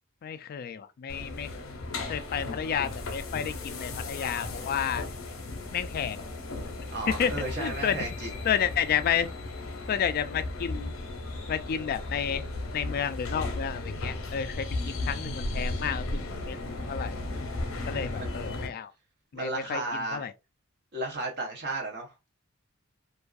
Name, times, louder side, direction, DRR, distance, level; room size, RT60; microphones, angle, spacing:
voice 1, 0.2-1.5 2.1-5.0 5.7-6.2 7.1-8.1 8.4-9.3 9.9-10.9 11.5-12.4 12.7-16.2 16.5-16.6 16.9-17.2 17.9-18.9 19.3-19.8 20.1-20.3, left 8 dB, 45° left, 0.3 m, -31 dB
sound 1, 1.1-18.7, left 2 dB, 70° left, 0.7 m, -35 dB
voice 2, 6.9-8.4 17.9-18.4 19.3-20.3 20.9-22.1, right 2 dB, 55° right, 0.8 m, -34 dB
2.6 x 2.4 x 2.3 m
head